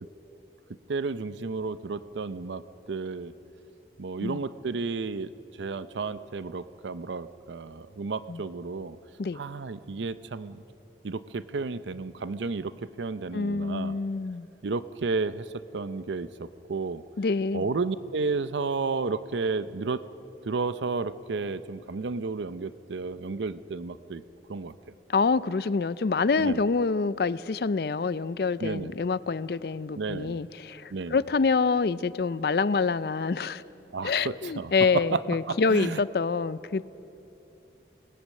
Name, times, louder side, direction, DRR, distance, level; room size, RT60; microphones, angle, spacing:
voice 1, 0.9-2.6 2.9-3.3 4.0-9.0 9.3-10.6 11.0-14.0 14.6-17.0 17.5-20.0 20.4-24.2 24.5-24.7 26.4-26.6 28.6-28.9 30.0-30.4 30.9-31.2 33.9-35.2 35.5-36.0, right 4 dB, 85° right, 14 dB, 0.6 m, -32 dB
voice 2, 13.3-14.5 17.2-17.7 25.1-33.6 34.0-36.9, left 4 dB, 60° left, 17 dB, 0.4 m, -26 dB
25.5 x 19.0 x 6.5 m, 2.9 s
head